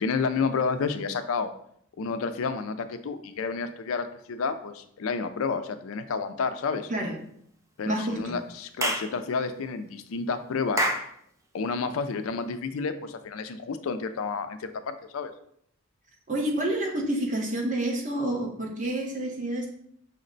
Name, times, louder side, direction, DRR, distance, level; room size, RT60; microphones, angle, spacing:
voice 1, 0.0-1.5 2.0-6.9 7.8-10.9 11.5-15.3, left 5 dB, 85° left, 9 dB, 0.4 m, -30 dB
voice 2, 7.8-8.3 16.3-19.7, right 1 dB, 40° right, -1 dB, 1.0 m, -28 dB
Clapping / Chirp tweet, 8.8-9.1 10.8-11.1, right 1 dB, 15° right, 0.4 m, -26 dB
5.7 x 2.1 x 3.8 m, 0.69 s
head